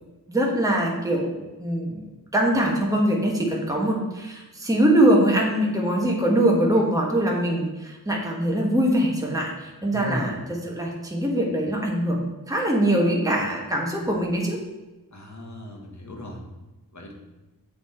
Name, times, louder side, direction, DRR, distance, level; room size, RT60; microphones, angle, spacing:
voice 1, 0.3-2.0 2.3-10.4 10.6-14.6, right 1 dB, 10° right, -1 dB, 1.2 m, -23 dB
voice 2, 9.9-10.4 15.1-16.4 16.9-17.1, left 1 dB, 50° left, 0 dB, 1.4 m, -35 dB
7.3 x 4.2 x 4.3 m, 1.1 s
wide cardioid pair, 70°, 37 cm